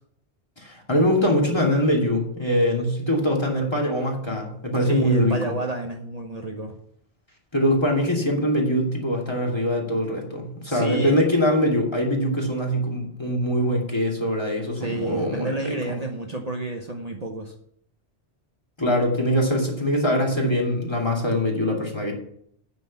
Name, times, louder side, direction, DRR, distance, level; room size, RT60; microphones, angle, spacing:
voice 1, 0.6-5.5 7.5-15.9 18.8-22.1, equal, 25° left, -1 dB, 2.5 m, -23 dB
voice 2, 4.9-6.8 10.7-11.2 14.8-17.5, right 2 dB, 35° right, 2 dB, 1.0 m, -30 dB
9.3 x 6.3 x 7.3 m, 0.68 s
omnidirectional pair, 1.1 m